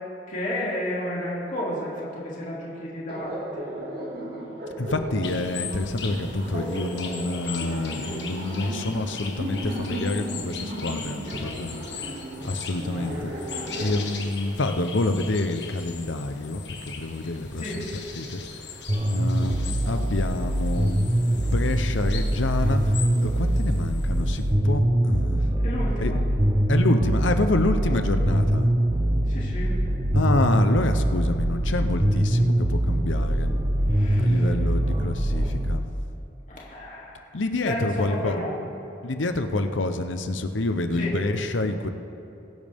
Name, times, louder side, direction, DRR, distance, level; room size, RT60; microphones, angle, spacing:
voice 1, 0.3-3.7 17.6-17.9 25.6-26.2 29.2-29.8 33.9-34.5 36.5-37.2 37.6-38.6 41.0-41.2, left 1 dB, 40° left, -6 dB, 2.9 m, -32 dB
Laughter, 3.1-14.0, right 1 dB, 55° right, 2.1 m, -35 dB
voice 2, 4.8-13.5 13.8-17.9 18.1-21.0 21.3-23.0 23.2-25.6 26.0-26.1 26.7-28.7 30.1-33.6 34.2-35.9 37.3-38.4 39.0-41.9, left 2 dB, 75° left, 8 dB, 0.9 m, -28 dB
sound 1, 5.2-24.5, left 6 dB, 60° left, 1.4 m, -40 dB
sound 2, 18.9-35.8, right 1 dB, 25° right, 0.7 m, -23 dB
23.0 x 10.5 x 3.6 m, 2.9 s
head